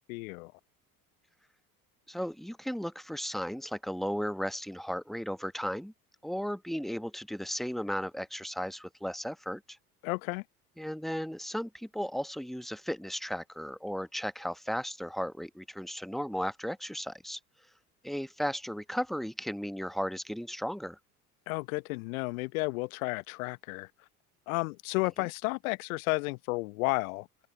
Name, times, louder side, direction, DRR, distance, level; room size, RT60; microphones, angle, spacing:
voice 1, 0.1-0.5 10.0-10.4 21.5-23.9 24.5-27.3, left 25 dB, 60° left, 1.0 m, -32 dB
voice 2, 2.1-5.9 6.2-9.8 10.8-17.4 18.0-21.0 25.2-25.3, equal, ahead, 1.1 m, -35 dB
figure-of-eight pair, 65°, 46 cm